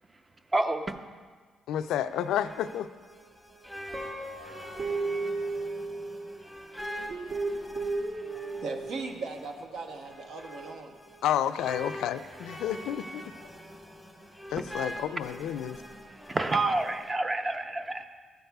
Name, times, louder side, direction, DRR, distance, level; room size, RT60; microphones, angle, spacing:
voice 1, 0.5-0.9 16.3-18.0, right 2 dB, 25° right, 7 dB, 0.6 m, -28 dB
voice 2, 1.7-2.9 11.2-13.2 14.5-15.8, left 10 dB, 85° left, 12 dB, 0.3 m, -30 dB
sound 1, 1.8-17.1, equal, 5° right, 1.2 m, -44 dB
Guitar, 3.9-6.4 7.1-9.0, right 3 dB, 55° right, 1.1 m, -34 dB
voice 3, 8.6-10.9, right 3 dB, 75° right, 4 dB, 0.9 m, -38 dB
13.5 x 7.8 x 2.3 m, 1.5 s
cardioid pair, 90°, 0 cm